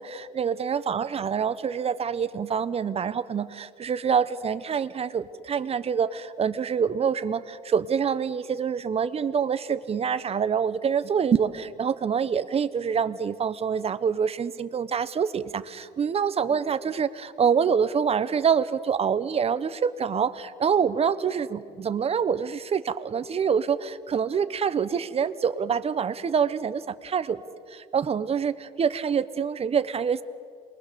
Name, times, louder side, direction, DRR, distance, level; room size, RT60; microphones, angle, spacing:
voice 1, 0.0-27.4 27.7-30.2, right 7 dB, 35° right, 13 dB, 1.1 m, -26 dB
27.5 x 22.0 x 6.9 m, 2.2 s
cardioid pair, 110°, 17 cm